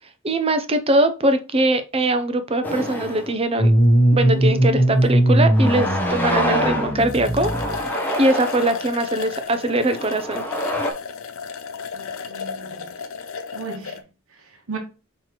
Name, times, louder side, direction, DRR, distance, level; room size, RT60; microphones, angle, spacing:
voice 1, 0.2-3.7 4.1-7.9 8.2-10.4, right 1 dB, 25° right, 0.6 m, -21 dB
sound 1, 2.6-3.3 3.8-3.9 4.9-5.1 5.5-7.0 7.4-8.8 9.6-10.9, equal, 10° left, 0.8 m, -26 dB
sound 2, 3.6-7.9, right 1 dB, 30° left, 1.1 m, -19 dB
sound 3, 6.7-6.8 7.0-14.0, left 5 dB, 70° left, 0.6 m, -34 dB
voice 2, 11.9-12.9 13.5-14.8, right 4 dB, 75° right, 1.2 m, -37 dB
5.7 x 3.1 x 3.0 m
head